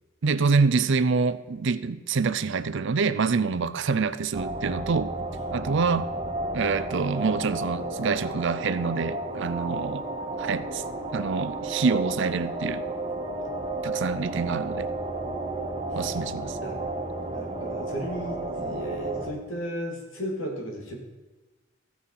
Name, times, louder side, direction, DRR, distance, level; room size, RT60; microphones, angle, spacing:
voice 1, 0.2-5.1 5.5-6.1 6.5-10.0 10.4-10.8 11.1-12.8 13.8-14.9 15.9-16.6, right 4 dB, 65° right, 0.5 m, -26 dB
sound 1, 4.3-19.3, right 2 dB, 30° right, 1.4 m, -32 dB
voice 2, 17.2-20.9, right 1 dB, 75° left, 2.6 m, -35 dB
15.5 x 6.2 x 5.7 m
head